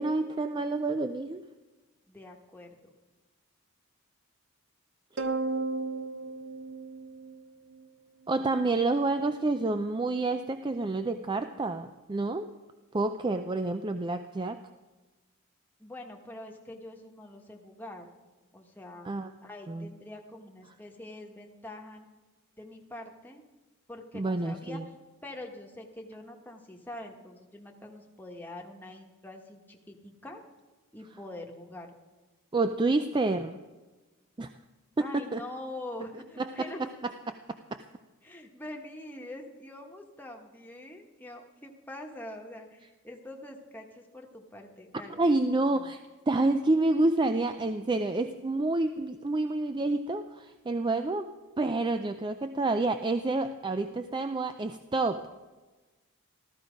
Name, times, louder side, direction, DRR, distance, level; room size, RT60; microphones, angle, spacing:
voice 1, 0.0-1.4 8.3-12.5 12.9-14.6 19.0-19.3 19.7-19.9 24.1-24.8 32.5-33.6 34.4-34.5 35.0-35.4 36.4-36.7 37.5-37.8 45.2-46.0 46.3-55.3, right 2 dB, 20° right, 9 dB, 0.4 m, -28 dB
voice 2, 2.1-2.9 15.8-18.1 18.5-19.1 19.4-22.1 22.6-23.4 23.9-24.8 25.2-30.4 30.9-31.9 35.0-36.9 38.2-45.9, left 1 dB, 10° left, 1 dB, 1.2 m, -44 dB
sound 1, 5.2-7.8, right 3 dB, 55° right, 0.8 m, -34 dB
14.0 x 14.0 x 5.1 m, 1.2 s
head